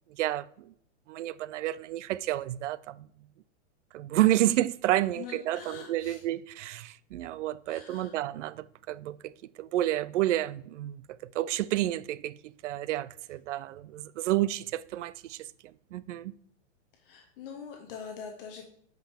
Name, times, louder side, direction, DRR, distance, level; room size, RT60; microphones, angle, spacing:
voice 1, 0.2-0.7 1.1-3.1 3.9-9.3 9.6-11.0 11.3-15.4 15.9-16.3, right 14 dB, 75° right, 0.5 m, -30 dB
voice 2, 5.1-6.2 7.7-8.2 16.9-18.7, left 7 dB, 50° left, 1.0 m, -44 dB
7.8 x 5.1 x 3.5 m
hypercardioid pair, 150°, 36 cm